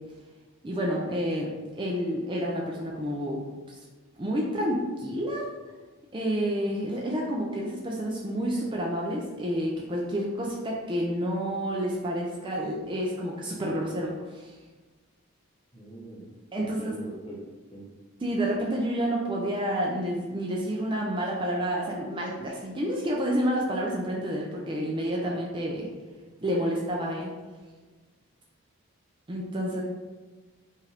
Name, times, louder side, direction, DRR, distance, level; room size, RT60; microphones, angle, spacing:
voice 1, 0.6-3.8 4.2-5.5 6.1-14.6 16.5-16.9 18.2-25.9 26.4-27.3 29.3-29.8, equal, 20° right, -2 dB, 0.5 m, -29 dB
voice 2, 15.7-16.3 16.6-17.4 17.7-17.8, right 1 dB, 25° left, -4 dB, 0.9 m, -41 dB
5.4 x 2.6 x 3.3 m, 1.3 s
head